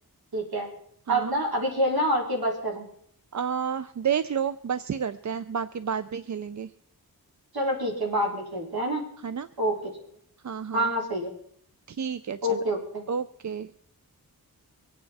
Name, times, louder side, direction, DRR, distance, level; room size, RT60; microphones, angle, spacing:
voice 1, 0.3-0.7 1.1-2.9 7.5-9.0 9.6-9.8 10.7-11.3 12.4-13.0, equal, 75° right, 0 dB, 3.5 m, -27 dB
voice 2, 3.3-6.7 9.2-9.5 10.4-10.9 11.9-12.6 13.1-13.7, right 7 dB, 50° right, 13 dB, 0.5 m, -30 dB
24.5 x 8.7 x 4.2 m, 0.65 s
wide cardioid pair, 90°, 37 cm